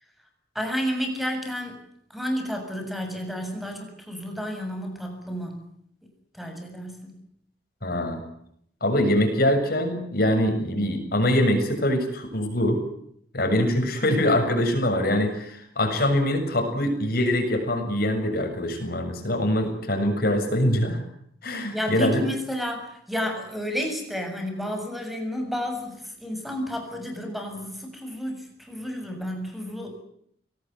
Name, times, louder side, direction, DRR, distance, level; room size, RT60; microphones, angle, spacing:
voice 1, 0.6-1.8 2.1-5.6 6.3-7.1 21.7-30.0, equal, ahead, 4 dB, 7.3 m, -31 dB
voice 2, 7.8-8.2 8.8-12.8 13.3-21.0 21.4-22.2, left 1 dB, 55° left, 5 dB, 7.2 m, -23 dB
24.0 x 18.5 x 9.5 m, 0.70 s
head